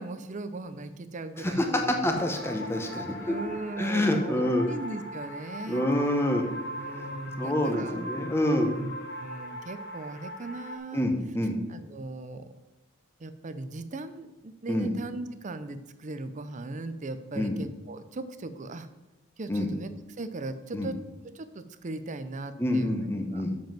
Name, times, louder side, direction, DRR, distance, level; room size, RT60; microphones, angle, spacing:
voice 1, 0.0-2.0 3.3-5.9 6.8-8.0 8.7-8.9 9.2-11.1 11.7-12.4 13.2-18.9 19.4-21.0 21.3-22.9 23.3-23.4, right 2 dB, 35° right, 11 dB, 0.5 m, -38 dB
voice 2, 1.4-3.3 3.8-4.7 5.7-6.4 6.9-8.7 10.9-11.6 14.7-14.9 17.3-17.6 19.5-19.7 20.7-20.9 22.6-23.5, left 1 dB, 10° left, 4 dB, 0.9 m, -27 dB
sound 1, 2.1-10.8, equal, 50° left, 0.9 m, -40 dB
7.2 x 5.2 x 5.8 m, 1.1 s
head